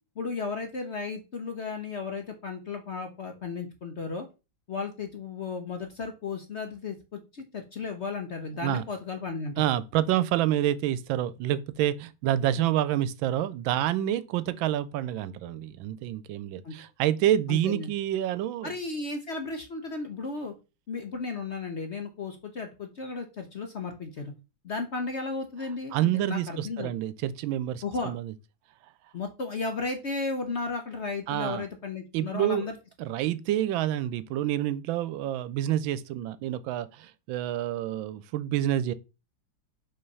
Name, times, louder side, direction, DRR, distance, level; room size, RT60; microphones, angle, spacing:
voice 1, 0.2-4.3 4.7-9.6 12.6-12.7 16.6-16.7 17.5-17.9 18.6-20.5 20.9-24.3 24.6-26.9 27.8-28.1 29.1-32.7, left 4 dB, 55° left, 0.8 m, -34 dB
voice 2, 9.6-18.7 25.9-28.3 31.3-31.7 32.1-32.6 33.0-38.9, right 12 dB, 90° right, 1.4 m, -28 dB
5.6 x 3.5 x 5.3 m
omnidirectional pair, 2.1 m